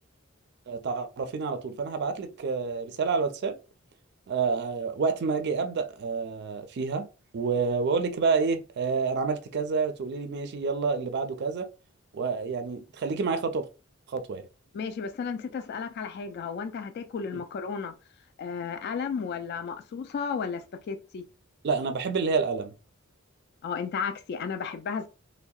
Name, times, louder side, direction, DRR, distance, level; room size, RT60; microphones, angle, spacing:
voice 1, 0.7-3.6 4.3-7.1 7.3-11.7 12.1-13.7 14.1-14.4 17.3-17.4 21.6-22.7, right 5 dB, 55° right, 0.4 m, -28 dB
voice 2, 14.7-17.9 18.4-21.2 23.6-25.1, left 6 dB, 50° left, 0.3 m, -33 dB
2.7 x 2.1 x 2.3 m
head